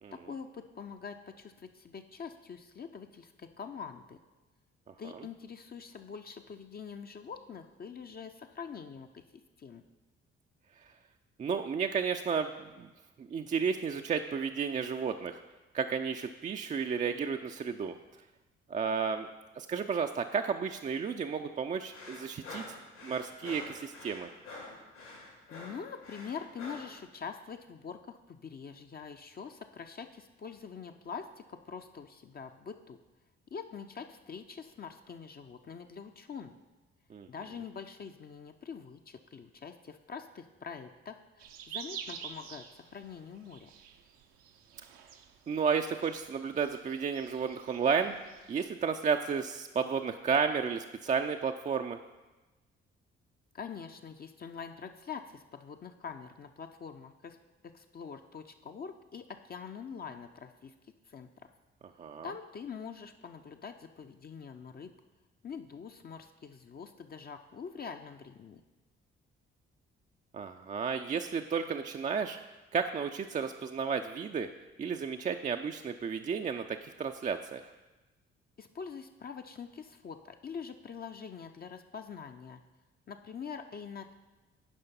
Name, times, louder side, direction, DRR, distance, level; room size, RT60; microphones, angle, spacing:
voice 1, 0.1-4.2 5.0-9.2 9.6-9.8 25.5-33.0 33.5-36.6 37.3-43.7 53.5-57.4 57.6-60.7 61.1-61.3 62.2-64.9 65.4-68.6 78.6-82.6 83.1-84.1, left 6 dB, 30° left, 6 dB, 0.5 m, -44 dB
voice 2, 11.4-12.5 12.8-12.9 13.2-15.4 15.7-17.9 18.7-19.3 19.6-22.6 23.0-24.3 37.1-37.3 45.5-48.1 48.5-52.0 62.0-62.3 70.3-72.4 72.7-74.5 74.8-77.6, right 6 dB, 25° right, 6 dB, 0.4 m, -32 dB
sound 1, 21.9-26.9, left 2 dB, 80° left, 2.4 m, -47 dB
sound 2, 41.4-48.7, right 8 dB, 70° right, 0.7 m, -48 dB
10.5 x 5.1 x 4.2 m, 1.1 s
figure-of-eight pair, 40°, 31 cm